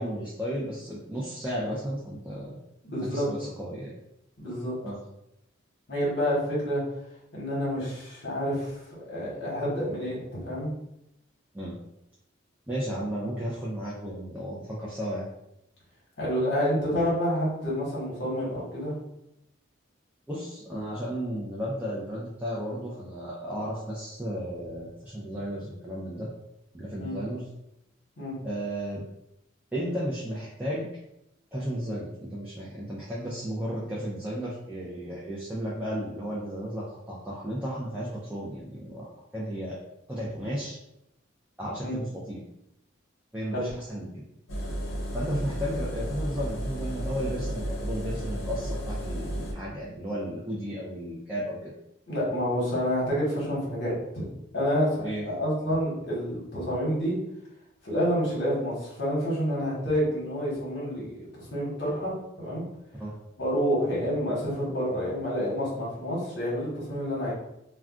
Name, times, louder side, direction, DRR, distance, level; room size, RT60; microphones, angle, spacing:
voice 1, 0.0-2.6 3.1-4.0 4.8-5.0 11.5-11.8 12.7-15.3 20.3-26.3 26.7-27.4 28.4-29.1 29.7-30.9 31.5-39.8 40.1-40.8 41.6-42.4 43.3-44.2 45.1-51.7 55.0-55.3 63.0-63.1, equal, 10° right, -7 dB, 0.4 m, -34 dB
voice 2, 2.8-3.3 4.4-4.7 5.9-6.8 7.3-10.7 16.2-18.9 27.0-27.2 28.2-28.4 41.8-42.0 43.5-43.7 52.1-54.2 54.5-57.2 57.8-62.6 63.4-67.3, equal, 60° left, -6 dB, 1.0 m, -28 dB
Engine, 44.5-49.5, equal, 75° left, 0.7 m, -33 dB
2.4 x 2.2 x 3.5 m, 0.83 s
head